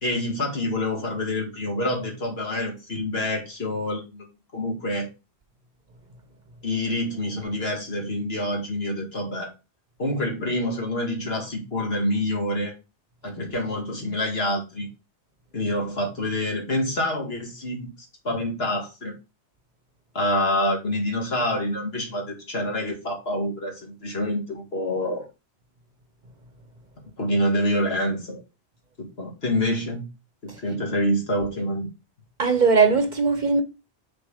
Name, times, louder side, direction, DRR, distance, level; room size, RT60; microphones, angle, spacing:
voice 1, 0.0-4.3 4.5-5.1 6.6-9.5 10.0-12.7 13.2-14.9 15.5-17.9 18.2-19.1 20.1-25.3 27.2-28.4 29.0-30.0 30.4-31.9, left 1 dB, 65° left, 2.3 m, -27 dB
voice 2, 32.4-33.6, right 5 dB, 45° right, 0.9 m, -19 dB
6.3 x 4.4 x 4.8 m
omnidirectional pair, 1.1 m